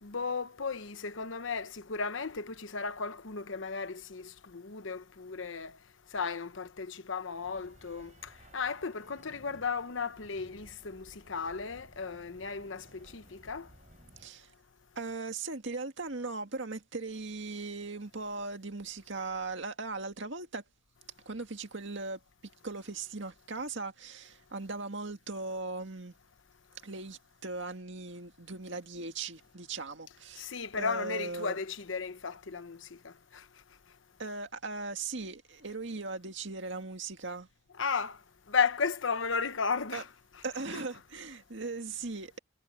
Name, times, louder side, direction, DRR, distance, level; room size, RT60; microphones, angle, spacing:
voice 1, 0.0-5.8 6.1-13.7 30.4-33.5 37.8-38.2 38.5-40.0, left 5 dB, 70° left, 1.0 m, -35 dB
sound 1, 7.4-14.3, right 1 dB, 35° right, 4.6 m, -58 dB
voice 2, 14.2-14.5 15.0-20.6 21.3-22.2 22.6-26.1 26.8-30.5 30.8-31.6 34.2-37.5 39.9-40.0 40.4-42.4, right 3 dB, 65° right, 2.0 m, -38 dB
head